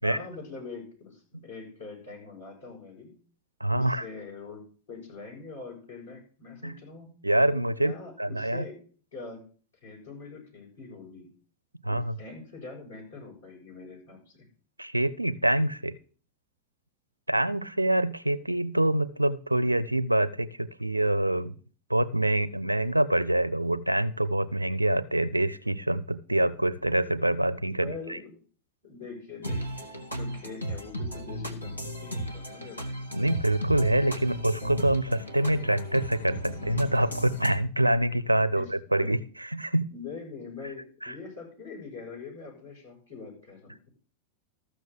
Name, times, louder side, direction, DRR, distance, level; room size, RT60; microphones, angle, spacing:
voice 1, 0.0-3.2 3.7-4.6 4.9-7.1 7.8-8.8 9.1-9.4 9.8-11.3 11.8-14.5 27.8-28.3 28.8-33.0 38.5-38.7 39.0-39.1 39.9-43.9, left 4 dB, 70° left, -2 dB, 6.7 m, -43 dB
voice 2, 3.6-4.0 6.6-6.8 7.2-7.9 8.2-8.7 11.8-12.2 14.8-16.0 17.3-21.5 21.9-28.2 33.1-39.9 41.0-41.1, right 1 dB, 85° right, 15 dB, 0.6 m, -26 dB
sound 1, 29.4-37.6, equal, 90° left, 1.3 m, -35 dB
13.5 x 6.5 x 6.7 m, 0.42 s
figure-of-eight pair, 90°, 0 cm